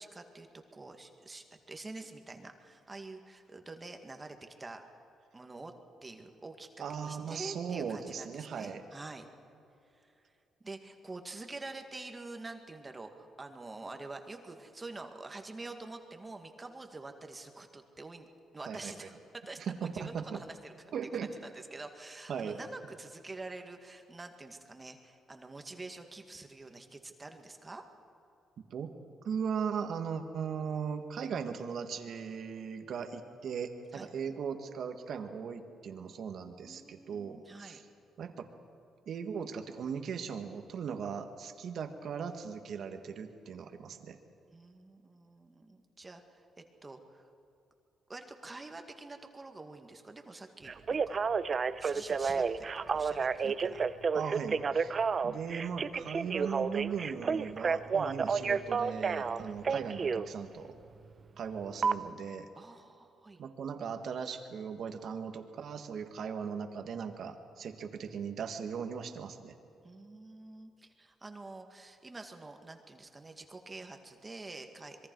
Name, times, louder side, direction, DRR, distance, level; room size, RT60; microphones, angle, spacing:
voice 1, 0.0-4.8 5.3-5.7 6.0-9.3 9.9-10.3 10.6-18.3 18.5-20.7 21.2-27.8 33.9-34.1 36.6-37.8 44.5-47.3 48.1-51.2 51.8-53.9 62.5-63.4 69.8-75.1, right 3 dB, 20° right, 5 dB, 2.0 m, -47 dB
voice 2, 6.8-8.8 18.7-18.9 19.6-20.4 20.9-21.3 22.3-22.6 28.7-28.9 29.2-37.8 38.2-38.5 39.1-44.2 53.4-53.5 54.1-55.0 55.2-60.8 61.4-62.5 63.4-69.5, right 6 dB, 65° right, 6 dB, 1.8 m, -38 dB
Telephone, 50.7-60.3 61.8-61.9, right 5 dB, 40° right, 0.7 m, -30 dB
26.0 x 22.5 x 4.8 m, 2.8 s
cardioid pair, 90°, 0 cm